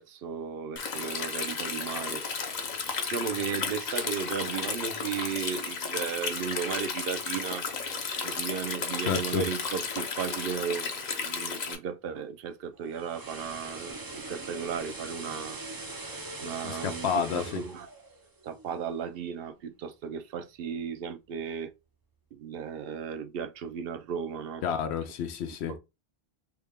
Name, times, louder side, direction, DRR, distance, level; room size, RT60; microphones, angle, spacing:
voice 1, 0.0-2.2 3.1-7.7 8.2-15.6 16.4-17.9 18.4-21.7 22.3-24.6 25.7-25.8, right 7 dB, 70° right, 0.7 m, -35 dB
Stream, 0.8-11.8, left 5 dB, 50° left, 0.7 m, -33 dB
voice 2, 9.0-9.4 16.6-17.6 24.6-25.8, left 7 dB, 85° left, 0.9 m, -30 dB
sound 1, 12.7-18.9 19.3-19.5, right 2 dB, 30° right, 0.4 m, -41 dB
3.5 x 2.2 x 3.4 m
omnidirectional pair, 1.1 m